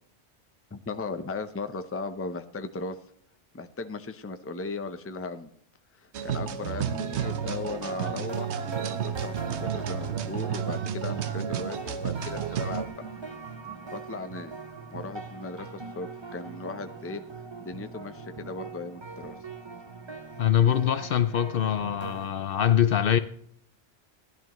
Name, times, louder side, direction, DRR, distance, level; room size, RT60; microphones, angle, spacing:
voice 1, 0.7-3.0 3.5-5.5 6.0-8.5 9.0-12.8 13.9-14.5 14.9-17.2 17.6-19.4, left 3 dB, 15° left, 0.6 m, -37 dB
sound 1, 6.1-12.9, right 8 dB, 90° right, 1.1 m, -31 dB
sound 2, 6.6-11.9 12.5-17.4, right 6 dB, 65° right, 2.0 m, -51 dB
sound 3, 7.2-22.3, right 4 dB, 25° right, 0.9 m, -42 dB
voice 2, 20.4-23.2, left 10 dB, 65° left, 0.7 m, -23 dB
16.0 x 11.0 x 3.0 m
omnidirectional pair, 1.1 m